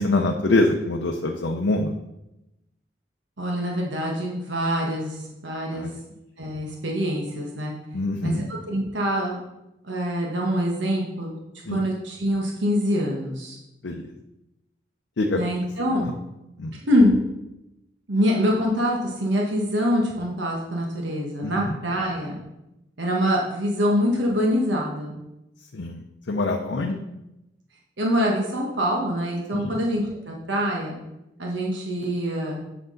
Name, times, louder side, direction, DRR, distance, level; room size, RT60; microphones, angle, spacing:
voice 1, 0.0-2.0 5.7-5.9 7.9-8.5 11.6-11.8 13.8-14.1 15.2-15.4 16.0-16.1 16.6-16.7 21.4-21.8 25.7-27.0 29.5-29.8, left 2 dB, 75° left, 2 dB, 0.6 m, -25 dB
voice 2, 3.4-5.1 5.4-5.9 6.4-7.7 8.2-9.4 9.9-11.4 11.7-13.6 15.3-16.2 16.8-17.2 18.1-22.4 23.0-25.2 28.0-31.0 31.4-32.6, equal, 80° right, -1 dB, 1.4 m, -24 dB
8.0 x 6.1 x 3.9 m, 0.91 s
head